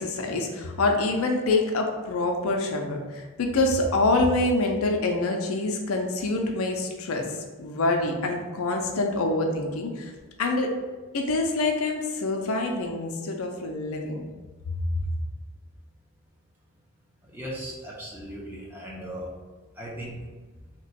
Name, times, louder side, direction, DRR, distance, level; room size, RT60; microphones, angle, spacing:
voice 1, 0.0-10.1 10.4-10.7 11.1-14.3 14.9-15.0, left 2 dB, 70° left, 3 dB, 0.5 m, -26 dB
voice 2, 17.3-19.3 19.8-20.2, equal, 10° right, -4 dB, 0.6 m, -37 dB
2.8 x 2.2 x 4.1 m, 1.3 s
head